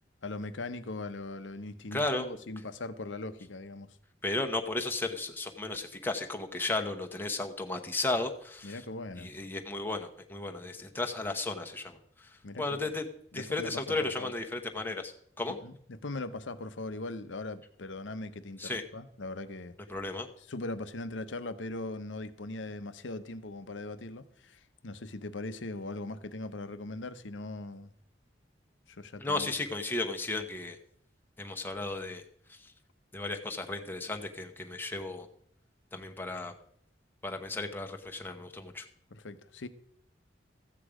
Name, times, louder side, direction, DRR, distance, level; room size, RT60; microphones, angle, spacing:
voice 1, 0.2-4.0 8.6-9.3 12.4-12.9 13.3-14.3 15.6-19.8 20.5-27.9 28.9-29.6 39.1-39.7, left 2 dB, 90° left, 11 dB, 0.9 m, -40 dB
voice 2, 1.9-2.3 4.2-8.8 9.2-13.1 13.3-15.6 18.6-18.8 19.9-20.3 29.2-30.8 31.4-32.2 32.5-32.7 33.1-35.3 35.9-36.5 37.2-38.9, left 2 dB, 10° left, 3 dB, 0.9 m, -34 dB
14.0 x 8.4 x 4.9 m, 0.67 s
head